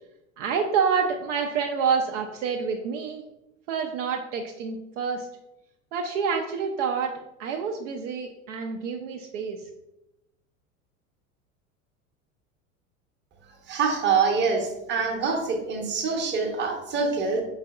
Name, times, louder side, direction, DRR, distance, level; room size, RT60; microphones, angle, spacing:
voice 1, 0.4-3.2 3.7-5.3 5.9-7.1 7.4-9.6, right 6 dB, 60° right, 2 dB, 0.5 m, -27 dB
voice 2, 13.7-17.4, right 5 dB, 25° right, 2 dB, 0.8 m, -25 dB
4.3 x 4.0 x 2.3 m, 0.92 s
figure-of-eight pair, 80°, 41 cm